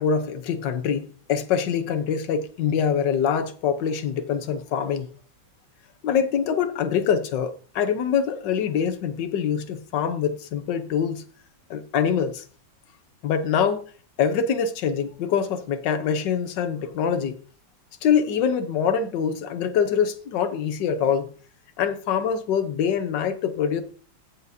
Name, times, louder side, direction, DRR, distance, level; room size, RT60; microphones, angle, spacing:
voice 1, 0.0-5.1 6.0-11.2 11.7-12.4 13.2-13.8 14.2-17.4 18.0-21.3 21.8-23.8, left 7 dB, 70° left, 1.5 m, -24 dB
16.5 x 5.8 x 2.8 m
omnidirectional pair, 2.1 m